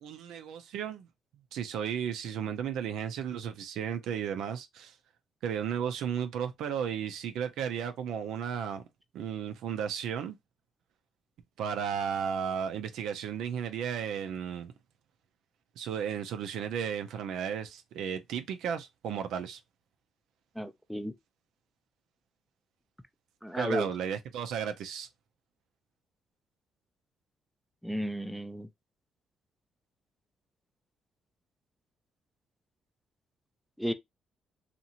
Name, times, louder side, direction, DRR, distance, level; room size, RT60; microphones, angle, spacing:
voice 1, 0.0-1.1 1.5-4.9 5.4-8.8 9.1-10.4 11.6-14.7 15.8-19.6 23.6-25.1, right 8 dB, 85° right, 0.4 m, -34 dB
voice 2, 20.6-21.1 23.4-23.9 27.8-28.7 33.8-33.9, equal, ahead, 0.4 m, -33 dB
2.8 x 2.5 x 2.7 m
cardioid pair, 90°, 0 cm